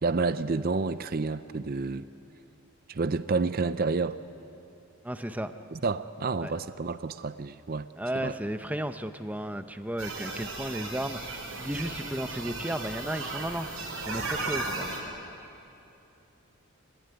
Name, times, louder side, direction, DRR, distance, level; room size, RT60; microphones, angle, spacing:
voice 1, 0.0-2.1 2.9-4.2 5.7-7.9 8.2-8.3, right 4 dB, 45° right, 13 dB, 0.5 m, -29 dB
voice 2, 5.0-5.5 6.4-6.5 8.0-13.7 14.0-14.9, right 1 dB, 5° right, 9 dB, 0.8 m, -34 dB
sound 1, 10.0-15.0, right 3 dB, 80° right, 5.2 m, -36 dB
26.5 x 18.5 x 9.6 m, 2.9 s
head